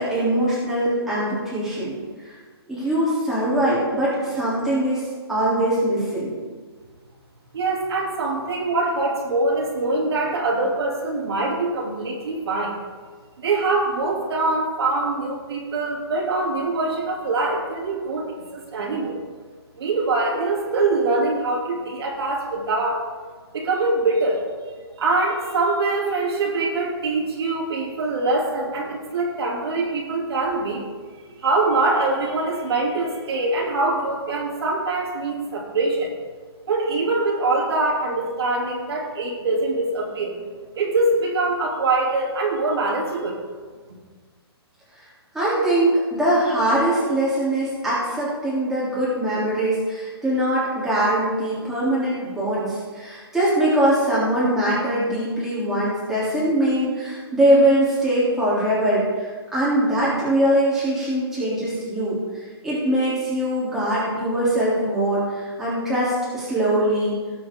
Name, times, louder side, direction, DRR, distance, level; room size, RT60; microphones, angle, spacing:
voice 1, 0.0-2.0 2.2-2.3 2.7-6.3 45.3-67.2, right 1 dB, 5° right, -10 dB, 3.4 m, -22 dB
voice 2, 7.5-12.8 13.4-19.2 19.8-23.0 23.5-24.4 25.0-36.1 36.7-40.4 40.8-43.4, right 2 dB, 70° right, -3 dB, 3.1 m, -23 dB
18.5 x 7.8 x 3.8 m, 1.5 s
hypercardioid pair, 160°, 14 cm